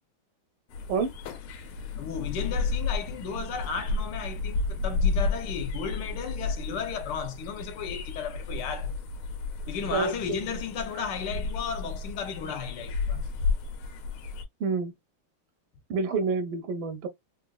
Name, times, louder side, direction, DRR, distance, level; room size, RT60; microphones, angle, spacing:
sound 1, 0.7-14.4, left 3 dB, 85° left, 1.6 m, -32 dB
voice 1, 2.0-9.0 9.7-13.2, left 7 dB, 70° left, 1.1 m, -34 dB
voice 2, 9.9-10.4 14.6-14.9 15.9-17.1, right 4 dB, 85° right, 1.5 m, -28 dB
4.0 x 2.5 x 2.2 m
omnidirectional pair, 2.3 m